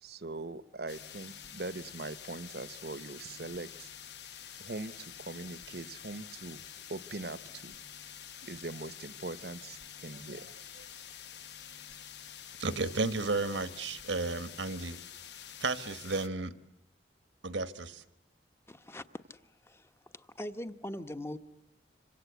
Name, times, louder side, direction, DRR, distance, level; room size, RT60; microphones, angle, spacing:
voice 1, 0.0-3.9 4.6-6.6 6.9-7.7 8.4-10.9, right 2 dB, 60° right, 14 dB, 0.9 m, -42 dB
sound 1, 0.9-16.3, left 9 dB, 70° left, 1.0 m, -48 dB
voice 2, 12.6-15.0 15.6-16.5 17.4-18.0, right 3 dB, 85° right, 11 dB, 1.3 m, -33 dB
voice 3, 18.7-21.4, left 1 dB, 15° left, 9 dB, 1.0 m, -42 dB
26.5 x 25.0 x 8.2 m, 0.79 s
head